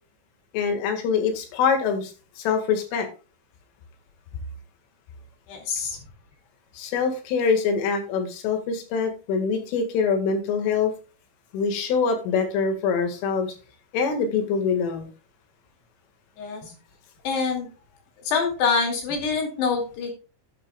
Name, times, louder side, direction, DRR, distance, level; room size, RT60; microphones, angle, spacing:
voice 1, 0.5-3.1 6.7-10.9 11.5-13.5 13.9-15.1, left 5 dB, 85° left, 6 dB, 4.5 m, -24 dB
voice 2, 5.5-6.0 16.4-16.7 17.2-17.7 18.2-20.1, left 5 dB, 60° left, 2 dB, 4.4 m, -25 dB
12.0 x 10.0 x 2.3 m, 0.33 s
omnidirectional pair, 5.5 m